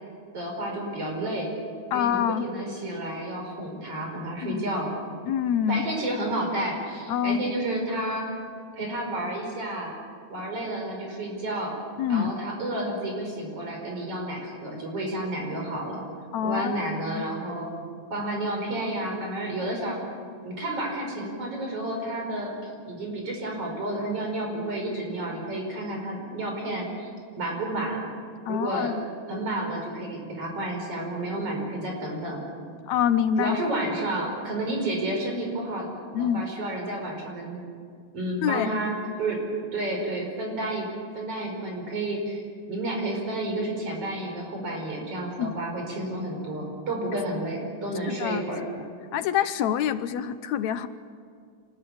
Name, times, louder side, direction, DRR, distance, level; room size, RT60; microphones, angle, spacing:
voice 1, 0.3-1.5 1.9-4.9 5.7-8.3 8.7-9.9 10.3-11.8 12.1-16.0 16.4-17.7 18.1-20.0 20.4-27.1 27.4-28.0 28.5-28.9 29.3-32.4 33.4-35.9 36.2-37.6 38.1-38.9 39.2-39.4 39.7-40.9 41.1-42.4 42.7-48.6, right 1 dB, 45° right, 1 dB, 6.1 m, -31 dB
voice 2, 1.9-2.5 4.4-4.6 5.3-5.9 7.1-7.4 12.0-12.3 16.3-16.8 17.2-17.3 28.5-29.0 32.9-33.6 36.1-36.5 38.4-38.7 45.4-45.6 48.1-48.4 49.1-50.9, left 9 dB, 70° left, 12 dB, 1.9 m, -26 dB
26.5 x 20.0 x 8.7 m, 2.2 s
omnidirectional pair, 3.6 m